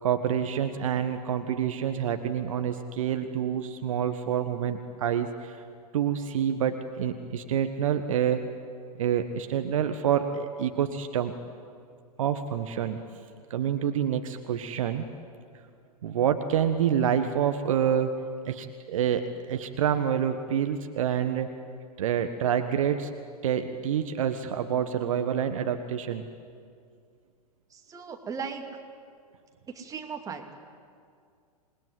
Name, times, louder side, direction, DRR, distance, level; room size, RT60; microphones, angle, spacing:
voice 1, 0.0-5.6 5.9-8.4 9.0-11.3 12.2-13.0 13.5-15.0 16.0-18.1 18.4-21.5 22.0-23.1 23.4-26.3, right 9 dB, 55° right, 7 dB, 1.5 m, -27 dB
voice 2, 27.7-28.6 29.7-30.5, right 6 dB, 15° right, 3 dB, 2.6 m, -37 dB
27.5 x 20.5 x 9.6 m, 2.2 s
figure-of-eight pair, 100°, 20 cm